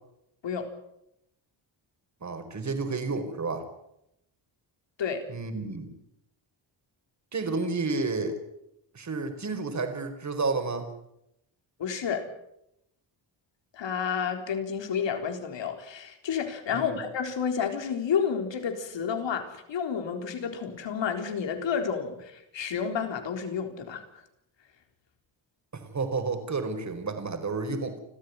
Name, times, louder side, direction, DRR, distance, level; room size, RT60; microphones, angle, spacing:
voice 1, 2.2-3.6 5.3-5.9 7.3-8.4 8.9-10.9 16.7-17.0 25.7-28.0, right 3 dB, 35° right, 7 dB, 4.7 m, -31 dB
voice 2, 11.8-12.3 13.7-24.0, left 7 dB, 70° left, 6 dB, 4.1 m, -30 dB
29.5 x 13.5 x 9.5 m, 0.82 s
cardioid pair, 115°, 47 cm